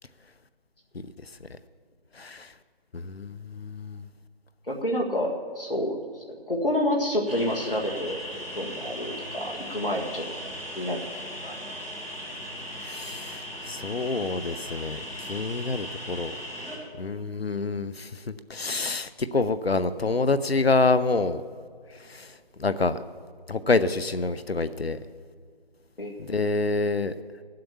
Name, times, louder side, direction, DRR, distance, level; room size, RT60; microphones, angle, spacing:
voice 1, 2.1-2.5 2.9-4.1 12.8-16.4 17.0-21.4 21.9-23.0 23.5-25.0 26.2-27.1, left 3 dB, 85° left, 13 dB, 0.7 m, -27 dB
voice 2, 4.7-10.2 10.8-11.0 11.4-11.7 26.0-26.1, left 1 dB, 65° left, 0 dB, 1.8 m, -29 dB
sound 1, 7.2-16.8, equal, ahead, 1.4 m, -38 dB
14.5 x 7.7 x 7.0 m, 2.1 s
figure-of-eight pair, 165°, 30 cm